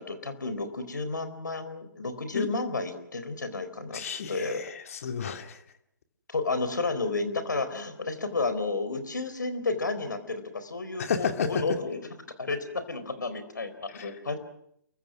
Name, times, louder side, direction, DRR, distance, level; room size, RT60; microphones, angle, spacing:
voice 1, 0.0-4.0 4.3-4.6 6.3-12.0 12.4-14.4, left 3 dB, 70° left, 10 dB, 4.3 m, -31 dB
voice 2, 3.9-5.6 11.0-11.5 13.9-14.1, left 7 dB, 45° left, 7 dB, 2.5 m, -32 dB
29.0 x 23.0 x 6.3 m, 0.72 s
figure-of-eight pair, 130°, 11 cm